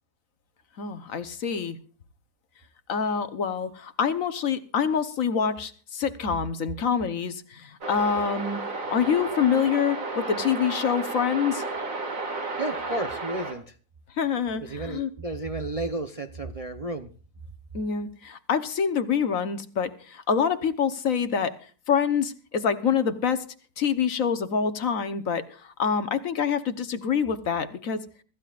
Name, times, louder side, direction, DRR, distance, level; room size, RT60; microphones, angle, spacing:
voice 1, 0.8-1.8 2.9-8.6 8.9-11.6 14.2-15.1 17.7-21.5 21.9-23.4 23.8-28.0, left 7 dB, 60° left, 1.4 m, -26 dB
sound 1, 7.8-13.5, right 3 dB, 60° right, 2.6 m, -32 dB
voice 2, 12.6-13.7 14.6-17.1, right 2 dB, 30° right, 0.7 m, -32 dB
25.0 x 14.5 x 2.5 m
omnidirectional pair, 1.6 m